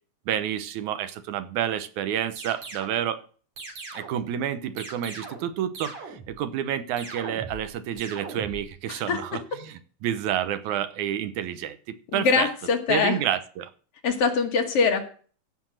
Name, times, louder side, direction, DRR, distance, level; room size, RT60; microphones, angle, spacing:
voice 1, 0.3-3.2 3.9-12.5 12.9-13.7, right 10 dB, 85° right, 2.4 m, -29 dB
sound 1, 2.4-3.0 3.6-4.3 4.8-5.5 5.8-6.4 7.0-7.7 8.0-8.7, right 3 dB, 65° right, 4.3 m, -39 dB
voice 2, 8.9-9.2 12.1-13.2 14.0-15.1, left 5 dB, 60° left, 2.1 m, -23 dB
15.0 x 5.8 x 6.4 m
omnidirectional pair, 3.4 m